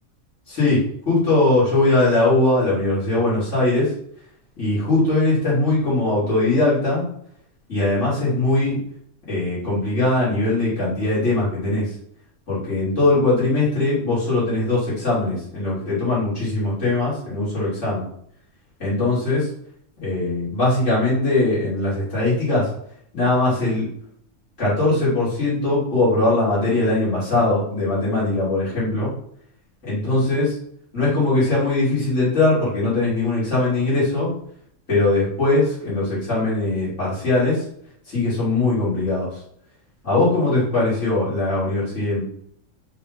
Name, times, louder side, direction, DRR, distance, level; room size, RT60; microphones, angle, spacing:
voice 1, 0.5-3.9 4.6-7.1 7.7-8.8 9.3-11.9 12.5-18.1 18.8-19.5 20.0-22.7 23.1-23.9 24.6-29.1 29.8-30.6 30.9-34.3 34.9-37.6 38.1-39.4 40.0-42.2, left 2 dB, 65° left, -9 dB, 3.4 m, -20 dB
5.4 x 4.0 x 5.2 m, 0.66 s
omnidirectional pair, 1.4 m